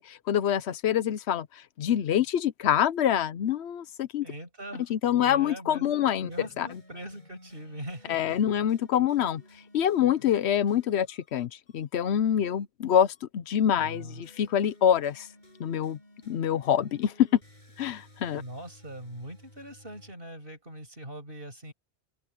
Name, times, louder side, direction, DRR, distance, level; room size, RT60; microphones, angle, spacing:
voice 1, 0.0-4.3 4.9-6.3 6.6-6.7 8.1-9.4 9.7-15.3 15.6-16.0 16.3-17.3 17.8-18.4, left 9 dB, 90° left, 1.0 m, -26 dB
voice 2, 4.2-4.9 5.2-8.3 13.8-14.2 18.4-21.7, right 1 dB, 60° right, 8.2 m, -42 dB
sound 1, 6.0-20.1, left 1 dB, 45° left, 8.0 m, -56 dB
open air
omnidirectional pair, 1.1 m